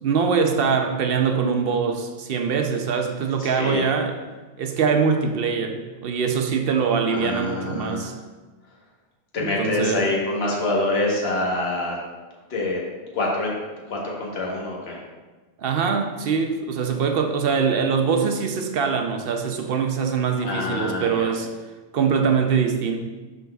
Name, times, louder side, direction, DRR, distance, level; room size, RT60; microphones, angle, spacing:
voice 1, 0.0-4.1 4.6-8.1 9.4-10.1 15.6-21.5 21.9-23.0, right 6 dB, 60° right, 5 dB, 0.7 m, -23 dB
voice 2, 3.4-3.8 7.1-8.0 9.3-12.0 12.5-12.8 13.1-13.5 13.9-15.0 20.4-21.3, left 2 dB, 60° left, -3 dB, 1.4 m, -25 dB
11.0 x 3.9 x 2.3 m, 1.3 s
omnidirectional pair, 1.2 m